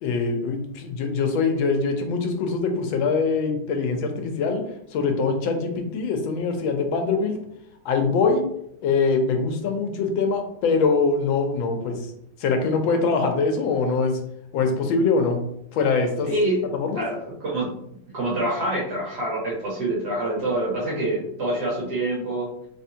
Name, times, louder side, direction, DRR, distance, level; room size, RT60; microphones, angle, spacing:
voice 1, 0.0-4.6 4.9-7.4 7.8-8.5 8.8-12.1 12.4-14.2 14.5-15.4 15.7-16.3 16.7-17.0, left 4 dB, 90° left, 4 dB, 1.5 m, -23 dB
voice 2, 16.3-17.7 18.1-22.5, right 1 dB, 60° right, -5 dB, 1.7 m, -26 dB
3.7 x 3.4 x 2.8 m, 0.75 s
omnidirectional pair, 2.1 m